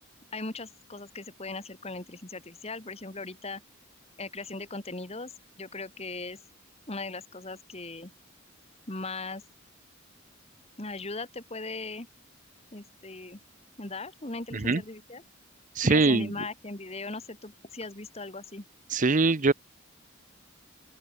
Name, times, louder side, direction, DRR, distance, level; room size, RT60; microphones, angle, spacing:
voice 1, 0.3-3.6 4.2-5.3 5.6-6.4 6.9-8.1 8.9-9.4 10.8-12.1 12.7-13.4 13.8-15.2 15.8-18.6, left 3 dB, 30° left, 2.4 m, -38 dB
voice 2, 15.8-16.3 18.9-19.5, right 3 dB, 40° right, 0.8 m, -22 dB
open air
head